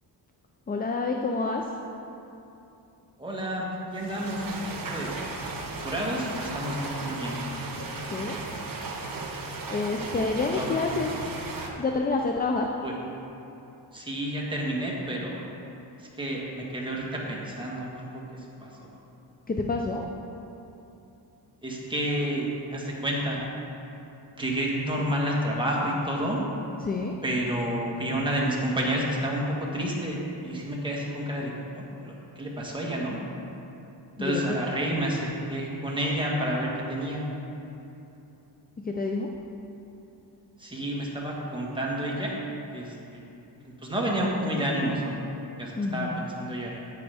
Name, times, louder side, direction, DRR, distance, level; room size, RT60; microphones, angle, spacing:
voice 1, 0.7-1.7 8.1-8.4 9.7-11.2 11.8-12.7 19.5-20.0 26.8-27.2 34.2-34.4 38.8-39.3 45.8-46.2, left 3 dB, 20° left, 2 dB, 0.4 m, -28 dB
voice 2, 3.2-4.6 4.9-5.2 5.8-7.4 10.5-10.7 12.8-12.9 13.9-15.4 16.0-18.9 21.6-23.4 24.3-26.4 27.2-33.2 34.2-37.3 40.6-42.4 42.7-43.2 43.6-45.2 45.6-46.8, right 1 dB, 10° right, -4 dB, 1.5 m, -30 dB
sound 1, 3.9-11.7, right 3 dB, 50° right, 1.0 m, -36 dB
9.4 x 9.1 x 3.5 m, 2.9 s
wide cardioid pair, 130°, 42 cm